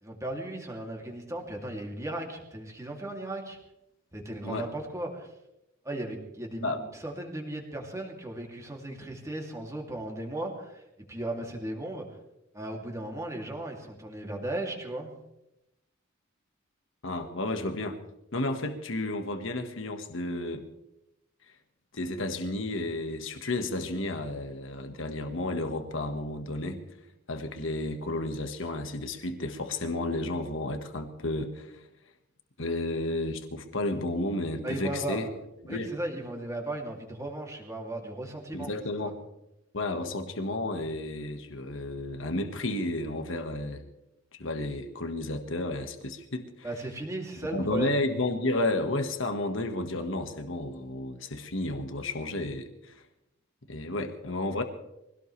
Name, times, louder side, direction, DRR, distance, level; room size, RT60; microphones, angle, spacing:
voice 1, 0.0-3.6 4.1-5.3 5.8-10.8 11.1-12.0 12.5-15.1 34.6-35.3 35.7-38.7 39.0-39.1 46.6-48.0, right 1 dB, 15° right, 1 dB, 2.8 m, -36 dB
voice 2, 17.0-18.0 18.3-20.7 21.9-26.8 27.3-31.8 32.6-35.3 35.6-36.0 38.5-39.2 39.7-43.9 44.4-46.7 47.5-53.0 53.7-54.6, left 2 dB, 65° left, 6 dB, 1.6 m, -32 dB
24.0 x 17.5 x 3.3 m, 0.87 s
head